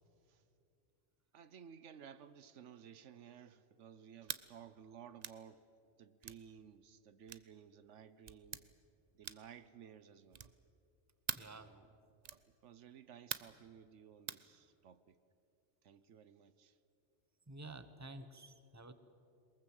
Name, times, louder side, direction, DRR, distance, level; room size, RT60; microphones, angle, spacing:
voice 1, 1.3-5.6 6.0-8.7 9.1-10.4 11.3-11.9 12.6-15.2 15.8-16.8, right 8 dB, 80° right, 1.2 m, -56 dB
sound 1, 4.2-4.5 5.2-5.4 6.2-6.4 7.3-7.5 8.3-8.6 9.2-9.6 10.3-10.6 11.3-11.5 12.2-12.5 13.3-13.6 14.3-14.5, right 7 dB, 40° right, 0.7 m, -44 dB
voice 2, 11.4-11.7 17.5-18.9, right 2 dB, 15° right, 1.1 m, -51 dB
22.5 x 21.0 x 7.9 m
omnidirectional pair, 1.2 m